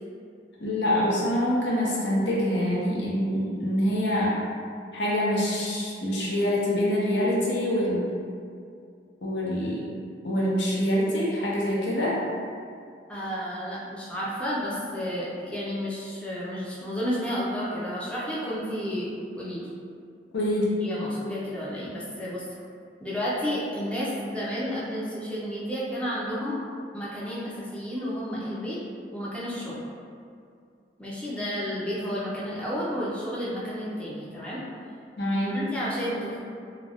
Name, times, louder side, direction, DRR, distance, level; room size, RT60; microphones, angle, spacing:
voice 1, 0.6-4.4 4.9-8.1 9.2-9.9 10.2-12.2 20.3-20.8 35.2-35.6, equal, 75° left, -6 dB, 0.7 m, -25 dB
voice 2, 13.1-19.7 20.8-22.4 23.0-26.6 26.9-28.8 29.1-29.8 31.0-34.6 35.5-36.5, equal, 5° left, -8 dB, 0.4 m, -31 dB
2.4 x 2.2 x 3.4 m, 2.3 s
head